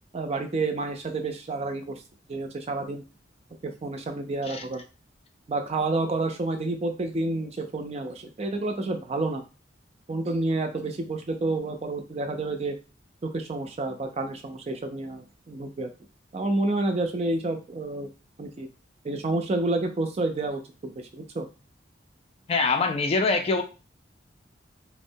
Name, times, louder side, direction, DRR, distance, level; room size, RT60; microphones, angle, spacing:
voice 1, 0.1-2.0 2.3-3.0 3.6-4.8 5.5-9.4 10.1-12.8 13.2-15.9 16.3-18.1 18.4-18.7 19.0-21.4, right 2 dB, 35° right, 5 dB, 0.4 m, -29 dB
voice 2, 22.5-23.6, left 3 dB, 30° left, 5 dB, 0.3 m, -24 dB
3.6 x 2.1 x 2.6 m, 0.32 s
head